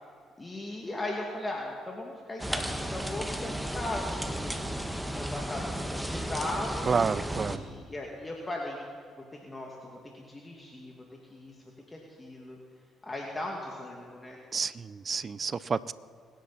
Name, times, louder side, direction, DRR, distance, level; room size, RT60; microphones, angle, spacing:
voice 1, 0.4-4.7 5.0-6.9 7.3-8.8 9.4-11.6 11.9-12.6 13.0-14.4, left 1 dB, 25° left, -1 dB, 2.3 m, -38 dB
sound 1, 2.4-7.6, right 1 dB, 5° right, 1.3 m, -34 dB
voice 2, 6.9-7.6 14.5-15.9, right 5 dB, 45° right, 19 dB, 0.5 m, -29 dB
24.0 x 10.5 x 4.2 m, 2.1 s
hypercardioid pair, 55°, 0 cm